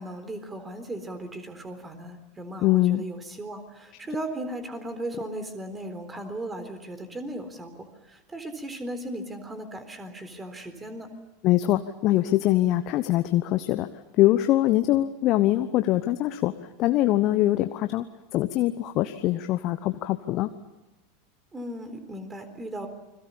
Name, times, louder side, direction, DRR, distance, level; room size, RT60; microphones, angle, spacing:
voice 1, 0.0-11.1 21.5-22.9, right 1 dB, 15° right, 9 dB, 3.9 m, -37 dB
voice 2, 2.6-3.0 11.4-13.9 14.2-16.5 16.8-18.0 18.3-20.5, left 15 dB, 45° left, 10 dB, 1.0 m, -23 dB
29.5 x 22.0 x 7.0 m, 1.1 s
figure-of-eight pair, 85°, 0 cm